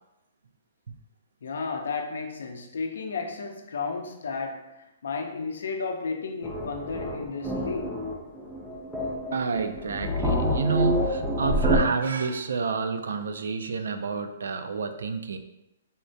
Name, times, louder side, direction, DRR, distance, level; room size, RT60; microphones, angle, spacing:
voice 1, 1.4-8.0, left 4 dB, 85° left, 3 dB, 0.5 m, -33 dB
sound 1, 6.4-11.8, equal, 5° right, 0.4 m, -28 dB
voice 2, 9.3-15.4, right 4 dB, 90° right, 8 dB, 0.3 m, -29 dB
3.5 x 2.1 x 2.6 m, 0.89 s
hypercardioid pair, 170°, 0 cm